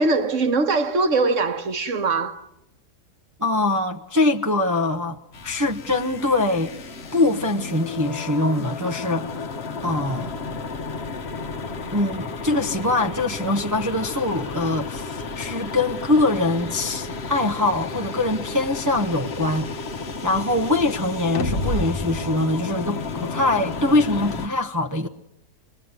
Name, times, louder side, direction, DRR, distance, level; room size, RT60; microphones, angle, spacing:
voice 1, 0.0-2.4, right 3 dB, 60° right, 1.6 m, -21 dB
voice 2, 3.4-6.7 7.1-9.3 9.8-10.3 11.9-19.7 20.2-25.1, left 2 dB, 15° right, 0.8 m, -23 dB
sound 1, 5.3-24.5, left 3 dB, 50° left, 1.3 m, -32 dB
26.0 x 21.0 x 9.6 m
omnidirectional pair, 1.5 m